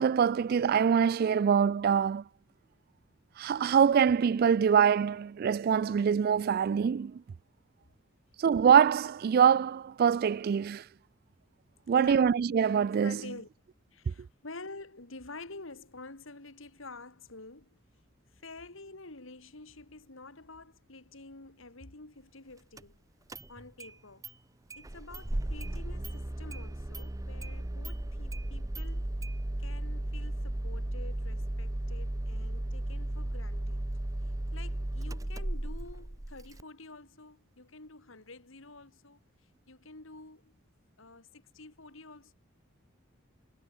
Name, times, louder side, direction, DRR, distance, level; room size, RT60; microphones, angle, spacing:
voice 1, 0.0-2.2 3.4-7.2 8.4-10.8 11.9-13.2, right 7 dB, 50° right, 0.3 m, -24 dB
voice 2, 11.9-12.3 13.0-13.5 13.9-17.8 18.3-23.0 23.5-24.3 24.8-29.2 29.6-33.9 34.5-39.2 39.7-40.5 41.0-42.4, left 3 dB, 70° left, 2.6 m, -48 dB
Engine starting, 22.8-22.9 23.3-23.9 24.2-24.3 24.7-36.6, right 1 dB, 15° right, 0.7 m, -35 dB
head